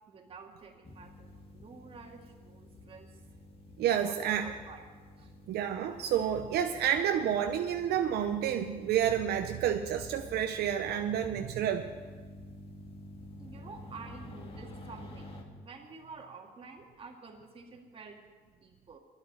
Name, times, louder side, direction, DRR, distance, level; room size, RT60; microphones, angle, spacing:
voice 1, 0.1-3.2 3.7-4.9 5.2-5.3 13.4-18.2 18.5-19.0, right 4 dB, 35° right, 2 dB, 2.0 m, -50 dB
sound 1, 0.8-15.4, left 1 dB, 35° left, 1.8 m, -50 dB
voice 2, 3.8-4.5 5.5-11.9, right 9 dB, 70° right, 6 dB, 0.7 m, -29 dB
11.0 x 8.1 x 9.7 m, 1.5 s
cardioid pair, 110°, 17 cm